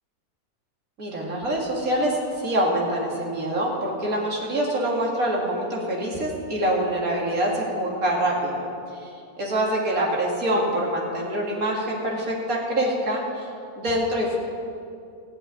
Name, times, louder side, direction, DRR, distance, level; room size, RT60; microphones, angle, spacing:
voice 1, 1.0-8.6 9.0-9.1 9.4-13.5 13.8-14.4, right 1 dB, 70° right, -3 dB, 2.7 m, -25 dB
15.0 x 5.8 x 9.6 m, 2.5 s
omnidirectional pair, 1.6 m